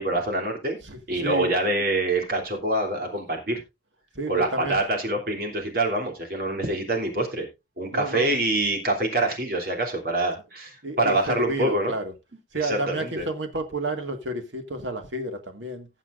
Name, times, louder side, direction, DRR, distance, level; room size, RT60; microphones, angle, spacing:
voice 1, 0.0-0.8 1.1-3.6 4.3-7.5 7.8-11.9 12.5-13.2, right 2 dB, 50° right, 3.1 m, -25 dB
voice 2, 0.8-1.6 4.2-4.8 7.9-8.3 10.8-12.1 12.5-15.9, right 1 dB, 75° right, 1.8 m, -30 dB
19.5 x 7.3 x 2.5 m
head